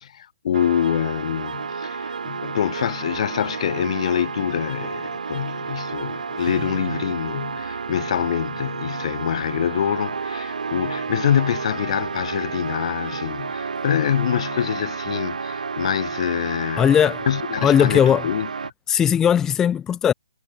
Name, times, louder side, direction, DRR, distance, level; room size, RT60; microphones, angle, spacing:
voice 1, 0.0-16.9 17.3-18.5, left 9 dB, 50° left, 0.9 m, -25 dB
sound 1, 0.5-18.7, right 5 dB, 75° right, 2.5 m, -31 dB
voice 2, 16.8-17.2 17.6-18.3 18.9-20.1, left 9 dB, 10° left, 0.5 m, -18 dB
hypercardioid pair, 145°, 4 cm